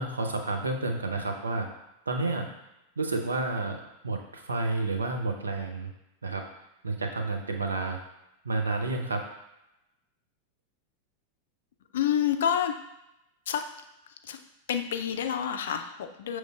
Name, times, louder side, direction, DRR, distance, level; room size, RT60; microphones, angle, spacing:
voice 1, 0.0-1.7 2.1-2.5 3.0-5.9 6.2-6.5 6.8-8.0 8.4-9.3, right 3 dB, 75° right, 3 dB, 0.6 m, -30 dB
voice 2, 11.9-12.7 13.5-13.6 14.2-14.4 14.7-16.4, left 9 dB, 60° left, 7 dB, 0.4 m, -28 dB
6.4 x 3.1 x 2.3 m, 0.89 s
figure-of-eight pair, 90°, 0 cm